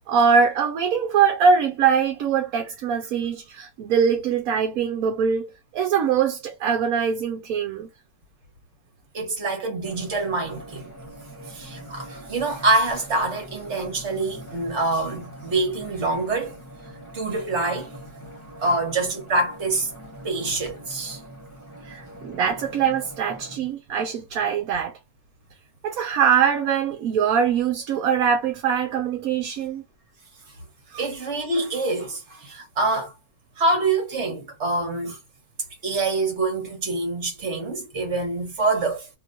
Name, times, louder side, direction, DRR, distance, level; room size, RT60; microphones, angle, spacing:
voice 1, 0.1-7.9 21.8-24.9 25.8-29.8 30.9-31.0, right 6 dB, 75° right, 1.0 m, -22 dB
voice 2, 9.1-10.9 11.5-16.5 17.1-17.9 18.6-19.9 20.2-21.2 31.0-33.1 33.6-35.2 35.8-39.1, right 2 dB, 50° right, 1.4 m, -25 dB
sound 1, 9.8-23.6, equal, 20° left, 1.2 m, -43 dB
2.9 x 2.9 x 2.5 m
omnidirectional pair, 1.6 m